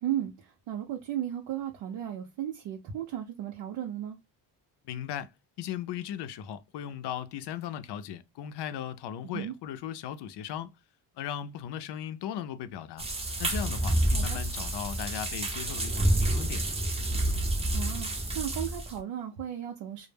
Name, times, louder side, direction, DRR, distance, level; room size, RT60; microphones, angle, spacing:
voice 1, 0.0-4.2 9.2-9.5 14.1-14.4 17.7-20.1, right 11 dB, 85° right, 0.6 m, -35 dB
voice 2, 4.8-5.3 5.6-10.7 11.2-13.1 13.4-16.7, left 10 dB, 70° left, 0.5 m, -37 dB
sound 1, 13.0-19.0, right 1 dB, 15° right, 0.5 m, -29 dB
2.1 x 2.0 x 3.1 m
cardioid pair, 110°, 43 cm